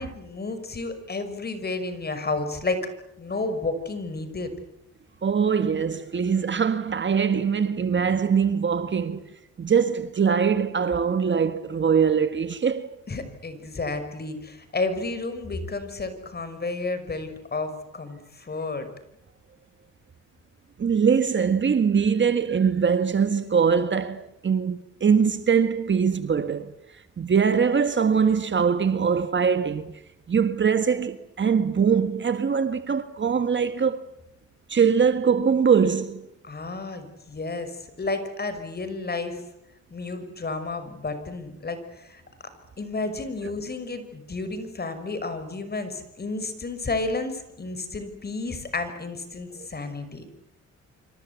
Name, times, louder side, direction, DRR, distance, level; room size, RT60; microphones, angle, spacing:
voice 1, 0.0-2.8 3.2-4.5 13.1-18.9 36.4-39.4 39.9-42.2 42.8-50.3, left 3 dB, 30° left, 5.8 m, -31 dB
voice 2, 5.2-9.2 9.6-12.9 20.8-26.7 27.2-29.9 30.3-34.0 34.7-36.3 49.6-49.7, right 6 dB, 40° right, 1.7 m, -22 dB
26.5 x 25.5 x 8.4 m
cardioid pair, 90°, 30 cm